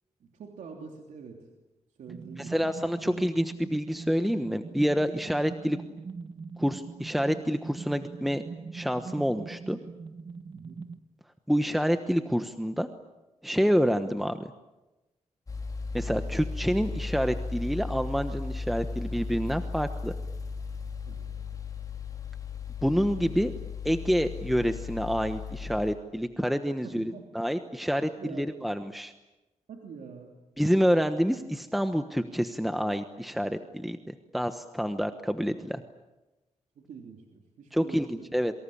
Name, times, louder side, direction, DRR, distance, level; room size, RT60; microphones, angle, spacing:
voice 1, 0.2-1.5 2.0-2.7 3.0-3.2 10.5-10.8 21.0-21.3 26.8-27.2 28.2-28.4 29.7-30.3 35.7-35.8 36.8-38.3, right 5 dB, 90° right, 2 dB, 3.2 m, -45 dB
sound 1, 2.1-11.0, right 4 dB, 40° right, 1.3 m, -42 dB
voice 2, 2.4-5.8 6.6-8.4 8.7-9.8 11.5-12.9 13.4-14.5 15.9-20.1 22.8-23.5 23.8-28.1 28.4-29.1 30.6-35.8 37.7-38.5, equal, ahead, 8 dB, 1.1 m, -28 dB
sound 2, 15.5-26.0, left 4 dB, 30° left, 4.7 m, -36 dB
27.5 x 24.5 x 8.7 m, 1.0 s
wide cardioid pair, 115°, 12 cm